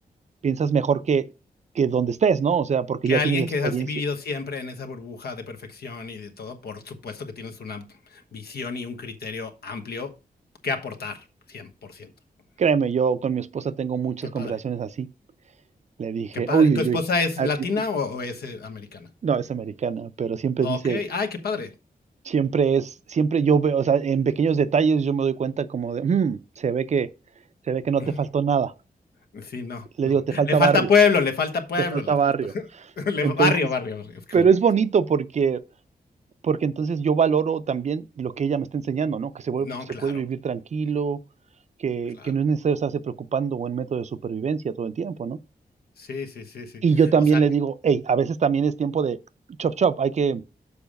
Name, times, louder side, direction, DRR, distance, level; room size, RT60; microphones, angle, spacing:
voice 1, 0.4-1.3 1.8-3.5 3.7-3.9 12.6-15.1 16.0-17.0 17.4-17.5 19.2-21.0 22.3-27.1 27.7-28.7 30.0-30.9 31.9-32.5 33.2-33.5 34.3-35.6 36.4-39.7 40.0-41.2 41.8-45.4 46.8-49.2 49.6-50.4, right 6 dB, 45° right, 0.5 m, -23 dB
voice 2, 3.1-10.1 10.6-12.1 14.2-14.6 16.3-19.1 20.6-21.7 28.0-28.2 29.3-32.6 33.0-34.5 39.6-40.2 42.1-42.3 46.0-46.8 47.3-47.4, left 5 dB, 85° left, 1.2 m, -28 dB
7.0 x 4.9 x 5.2 m
wide cardioid pair, 155°, 16 cm